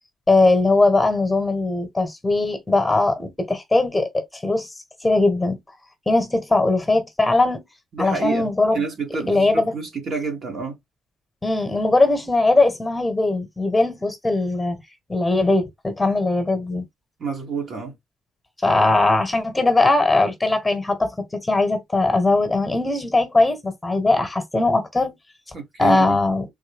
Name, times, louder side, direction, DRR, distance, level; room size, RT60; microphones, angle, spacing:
voice 1, 0.3-4.7 5.0-5.6 6.1-7.6 8.0-8.8 9.3-9.7 11.4-14.8 15.1-16.8 18.6-25.1 25.8-26.4, left 2 dB, 15° left, 1.1 m, -20 dB
voice 2, 7.9-8.5 8.7-10.8 17.2-18.0 25.5-26.2, right 5 dB, 55° right, 1.3 m, -28 dB
3.6 x 2.1 x 3.4 m
cardioid pair, 90°, 0 cm